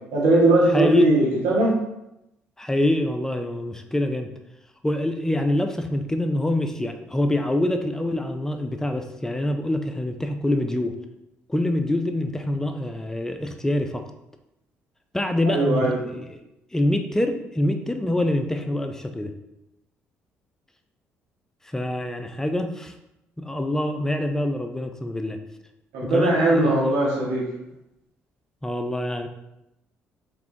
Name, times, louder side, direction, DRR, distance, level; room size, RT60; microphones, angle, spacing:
voice 1, 0.1-1.8 15.5-16.0 25.9-27.5, right 2 dB, 90° right, -4 dB, 1.4 m, -20 dB
voice 2, 0.7-1.2 2.6-4.3 4.8-11.0 11.5-14.0 15.1-16.4 16.7-19.3 21.6-22.9 23.4-25.4 26.0-26.8 28.6-29.3, left 1 dB, 10° left, 6 dB, 0.4 m, -25 dB
3.9 x 3.4 x 3.1 m, 0.89 s
supercardioid pair, 75°, 5 cm